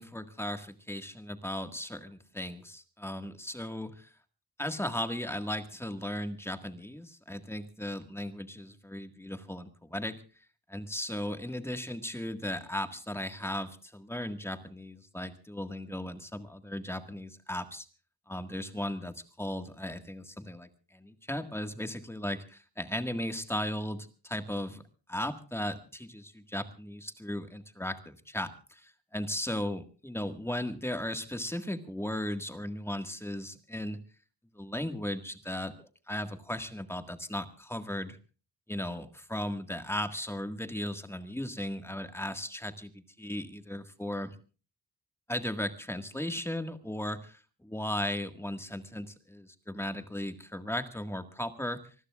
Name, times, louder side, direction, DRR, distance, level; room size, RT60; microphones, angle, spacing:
voice 1, 0.0-4.1 4.6-10.2 10.7-17.8 18.3-24.8 25.1-34.0 34.5-35.7 36.1-38.2 38.7-44.3 45.3-51.9, left 1 dB, 5° left, 8 dB, 1.7 m, -36 dB
26.0 x 20.0 x 2.4 m, 0.37 s
wide cardioid pair, 155°, 38 cm